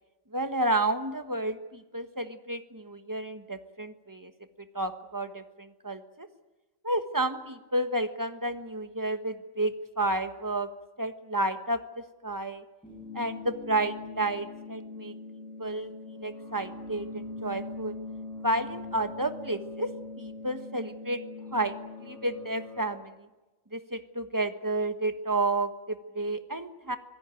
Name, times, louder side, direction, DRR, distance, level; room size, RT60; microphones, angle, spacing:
voice 1, 0.3-4.3 4.6-6.3 6.8-10.7 11.0-12.6 13.1-15.1 15.6-18.0 18.4-19.9 20.2-21.2 21.5-23.3 23.7-27.0, right 2 dB, 15° right, 9 dB, 1.2 m, -31 dB
sound 1, 12.8-22.8, left 3 dB, 5° left, 5.9 m, -42 dB
25.0 x 17.0 x 9.1 m, 1.1 s
omnidirectional pair, 1.4 m